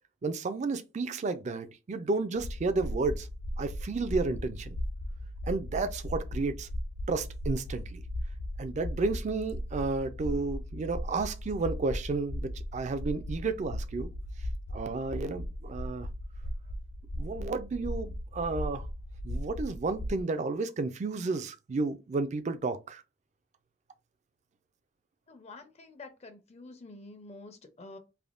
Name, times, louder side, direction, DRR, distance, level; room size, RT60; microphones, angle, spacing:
voice 1, 0.2-3.3 3.6-4.8 5.4-6.7 7.1-8.0 8.6-14.1 14.7-16.1 17.2-18.9 19.2-23.0, right 3 dB, 40° right, 0.4 m, -32 dB
sound 1, 2.4-20.2, equal, 85° left, 0.4 m, -37 dB
voice 2, 25.3-28.0, left 2 dB, 35° left, 0.5 m, -48 dB
3.4 x 2.1 x 2.4 m
head